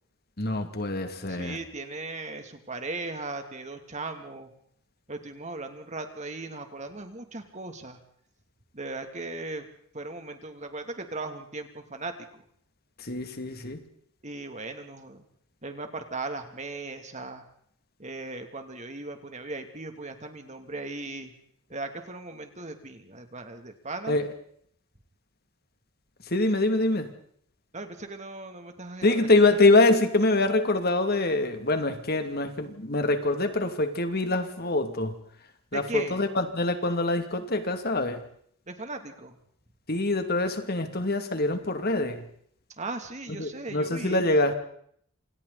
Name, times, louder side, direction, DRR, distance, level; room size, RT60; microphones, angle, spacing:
voice 1, 0.4-1.6 13.0-13.8 24.1-24.3 26.3-27.1 29.0-35.1 35.7-38.2 39.9-42.3 43.3-44.6, left 2 dB, 45° left, 7 dB, 2.8 m, -25 dB
voice 2, 1.3-4.5 5.1-8.0 8.7-9.7 9.9-12.4 14.2-15.2 15.6-17.4 18.0-21.3 21.7-24.2 27.7-29.3 35.7-36.2 38.7-39.4 42.7-44.3, right 3 dB, 35° right, 6 dB, 3.0 m, -37 dB
28.5 x 28.0 x 4.3 m, 0.65 s
head